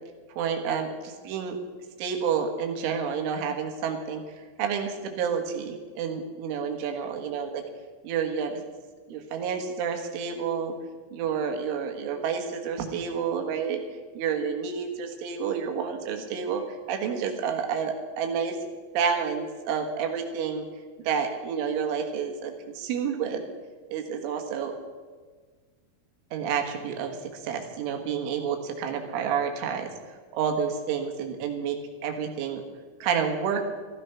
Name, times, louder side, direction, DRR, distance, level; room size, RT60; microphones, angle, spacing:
voice 1, 0.4-1.6 2.0-4.2 4.6-7.6 8.0-8.6 9.1-10.7 11.1-13.8 14.2-18.6 18.9-20.7 21.0-23.4 23.9-24.8 26.3-29.9 30.3-31.8 32.0-32.6 33.0-33.6, right 7 dB, 90° right, 4 dB, 4.1 m, -29 dB
15.0 x 12.5 x 5.8 m, 1.5 s
omnidirectional pair, 5.4 m